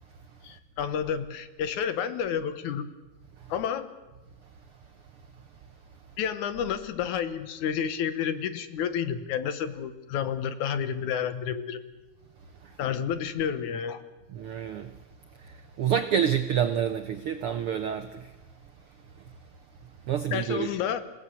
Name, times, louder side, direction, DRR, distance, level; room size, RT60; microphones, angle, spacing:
voice 1, 0.4-2.9 3.5-4.0 6.2-11.8 12.8-14.0 20.3-21.0, left 8 dB, 70° left, 11 dB, 2.5 m, -30 dB
voice 2, 14.3-14.9 15.8-18.3 20.1-20.7, right 8 dB, 75° right, 9 dB, 1.3 m, -27 dB
27.0 x 17.5 x 8.3 m, 1.2 s
omnidirectional pair, 3.7 m